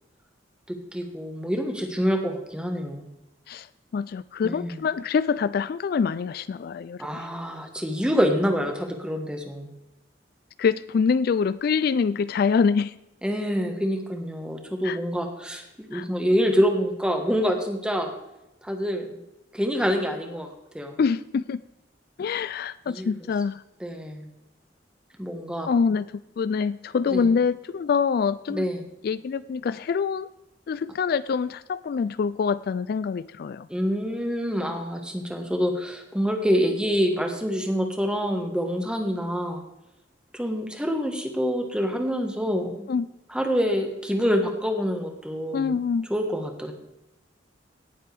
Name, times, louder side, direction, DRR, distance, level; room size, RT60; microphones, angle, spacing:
voice 1, 0.7-3.1 4.4-4.8 7.0-9.7 13.2-18.1 18.6-19.2 19.5-20.5 20.7-21.0 22.9-23.1 23.8-24.2 25.2-25.7 27.1-27.3 28.5-28.8 33.7-39.6 40.3-42.9 43.3-45.8 46.1-46.7, equal, 5° right, 4 dB, 1.5 m, -26 dB
voice 2, 3.9-7.2 10.6-12.9 14.8-15.0 15.9-16.0 21.0-21.6 22.2-23.6 25.7-26.0 26.4-28.7 29.0-30.3 30.7-33.7 42.9-43.1 45.5-46.1, left 5 dB, 55° left, 16 dB, 0.3 m, -25 dB
17.5 x 7.7 x 3.5 m, 0.91 s
head